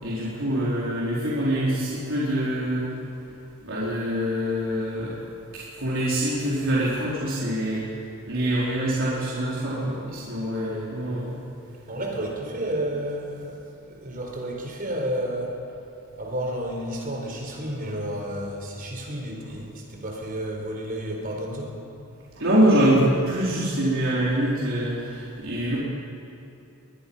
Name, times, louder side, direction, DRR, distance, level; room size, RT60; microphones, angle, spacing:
voice 1, 0.0-2.9 3.6-5.1 5.5-7.9 8.3-11.4 22.4-25.8, right 1 dB, 65° right, -8 dB, 4.4 m, -24 dB
voice 2, 11.9-15.5 16.2-21.8, right 1 dB, 40° right, 1 dB, 4.2 m, -31 dB
22.5 x 20.5 x 5.7 m, 2.8 s
head